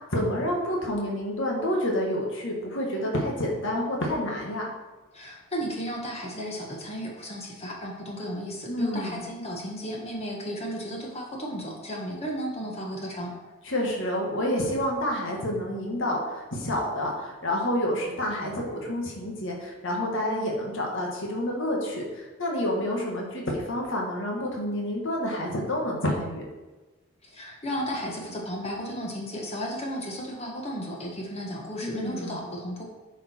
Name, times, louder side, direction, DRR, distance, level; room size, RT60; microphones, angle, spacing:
voice 1, 0.1-4.7 8.7-9.3 13.7-26.4 31.8-32.5, left 1 dB, 60° left, -1 dB, 1.7 m, -29 dB
voice 2, 5.1-13.3 27.2-32.8, equal, 30° left, -1 dB, 1.4 m, -34 dB
10.0 x 5.1 x 4.5 m, 1.2 s
head